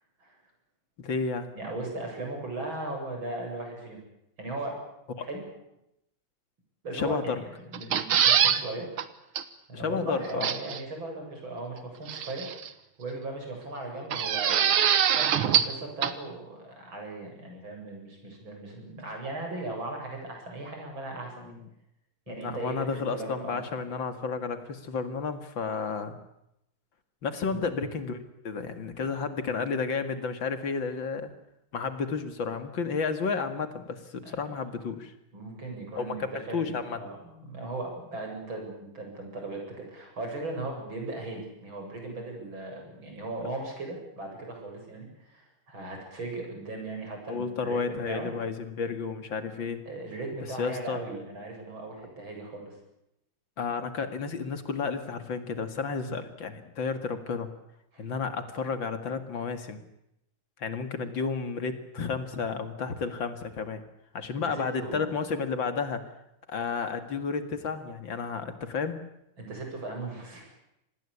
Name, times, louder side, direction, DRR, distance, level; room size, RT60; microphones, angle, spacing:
voice 1, 1.0-1.5 5.2-5.3 6.9-7.4 9.7-10.5 21.4-21.7 22.3-26.2 27.2-28.2 28.4-31.3 31.7-35.1 36.0-37.0 47.3-49.8 50.6-51.0 53.6-57.5 58.0-59.8 60.6-63.8 64.1-66.0 66.5-69.0, left 5 dB, 65° left, 9 dB, 2.7 m, -32 dB
voice 2, 1.6-4.0 4.4-4.8 5.2-5.4 6.8-8.9 9.7-12.6 13.0-14.8 15.3-21.6 22.3-23.6 27.5-27.6 34.2-34.6 35.3-48.3 49.9-52.8 56.0-56.2 57.9-58.0 64.4-65.1 69.4-70.5, right 2 dB, 70° right, 2 dB, 8.7 m, -38 dB
sound 1, 7.7-8.6 9.0-9.1 9.4-9.5 10.4-10.8 12.1-12.7 14.1-15.8 16.0-16.1, right 9 dB, 85° right, 2.2 m, -23 dB
26.5 x 20.0 x 8.6 m, 0.82 s
omnidirectional pair, 2.3 m